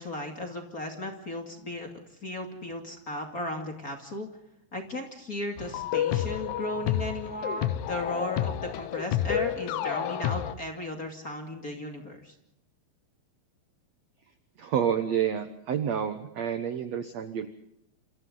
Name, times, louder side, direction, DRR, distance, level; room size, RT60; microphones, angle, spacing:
voice 1, 0.0-1.9 2.2-4.3 4.7-12.3, left 1 dB, 25° left, 3 dB, 2.2 m, -35 dB
sound 1, 5.6-10.5, left 11 dB, 75° left, 1.8 m, -30 dB
voice 2, 14.6-17.5, right 8 dB, 70° right, 9 dB, 1.6 m, -29 dB
28.5 x 28.5 x 4.0 m, 0.80 s
omnidirectional pair, 4.7 m